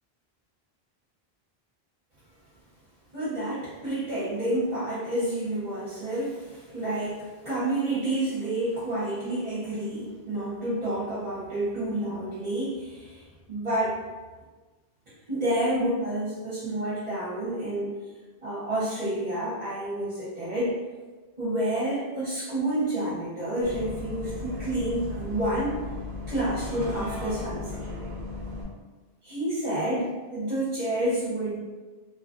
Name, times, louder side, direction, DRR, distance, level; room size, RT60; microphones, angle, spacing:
voice 1, 3.1-13.2 13.5-14.0 15.3-17.9 18.4-20.8 21.4-25.8 26.3-27.8 29.2-31.6, right 1 dB, 45° right, -11 dB, 1.0 m, -29 dB
Bus, 23.6-28.6, left 3 dB, 65° right, 0.7 m, -36 dB
2.7 x 2.4 x 2.5 m, 1.3 s
omnidirectional pair, 1.1 m